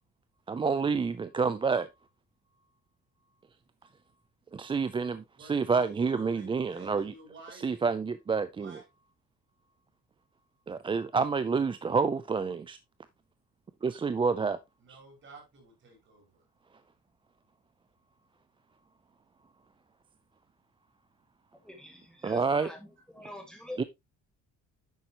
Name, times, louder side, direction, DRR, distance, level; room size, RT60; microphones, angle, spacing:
voice 1, 0.5-1.9 4.5-7.1 7.5-8.8 10.7-12.8 13.8-14.6 14.9-15.0 22.2-22.7 23.8-23.9, right 5 dB, 15° right, 0.4 m, -28 dB
voice 2, 5.4-7.7 8.6-8.8 14.8-16.4, right 1 dB, 40° right, 5.0 m, -52 dB
voice 3, 21.5-23.8, left 1 dB, ahead, 1.8 m, -45 dB
10.0 x 7.5 x 2.9 m
cardioid pair, 165°, 30 cm